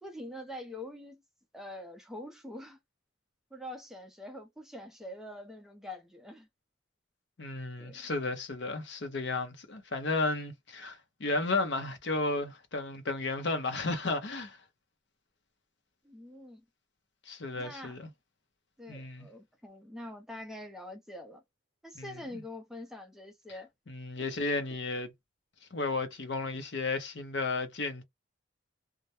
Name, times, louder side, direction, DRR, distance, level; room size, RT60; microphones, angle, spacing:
voice 1, 0.0-1.2 1.5-2.8 3.5-6.5 7.8-8.0 16.0-16.6 17.5-18.0 18.8-21.4 21.8-23.7, left 1 dB, ahead, 0.5 m, -44 dB
voice 2, 7.4-14.6 17.3-18.1 18.9-19.3 21.9-22.1 23.9-25.1 25.7-28.0, left 3 dB, 65° left, 0.7 m, -33 dB
2.3 x 2.1 x 2.8 m
head